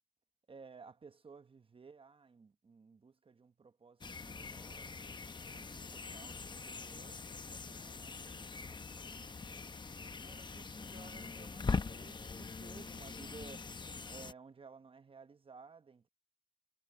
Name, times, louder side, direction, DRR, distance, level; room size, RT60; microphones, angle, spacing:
voice 1, 0.5-5.0 5.5-7.2 7.5-8.5 9.1-9.6 10.2-13.7 14.1-16.1, right 5 dB, 30° right, 1.1 m, -56 dB
sound 1, 4.0-14.3, left 4 dB, 25° left, 0.8 m, -42 dB
cardioid pair, 105°, 18 cm